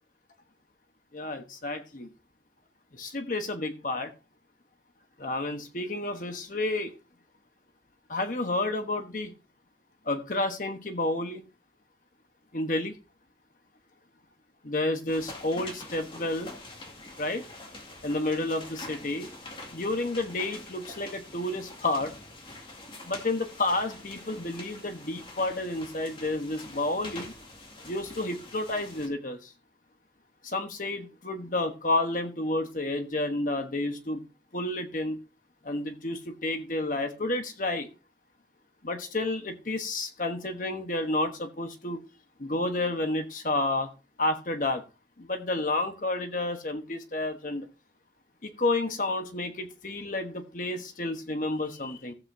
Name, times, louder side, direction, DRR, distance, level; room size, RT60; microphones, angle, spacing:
voice 1, 1.1-2.1 2.9-4.1 5.2-6.9 8.1-9.3 10.0-11.4 12.5-12.9 14.6-16.5 17.2-17.5 18.0-19.3 19.7-22.1 23.0-27.3 27.8-29.5 30.4-34.2 34.5-35.2 35.6-37.9 38.8-42.0 42.4-43.9 44.2-44.8 45.2-47.7 48.4-52.1, left 2 dB, 45° left, 6 dB, 1.1 m, -30 dB
sound 1, 15.1-29.1, left 2 dB, 30° left, 2.1 m, -45 dB
15.0 x 8.1 x 2.7 m, 0.30 s
head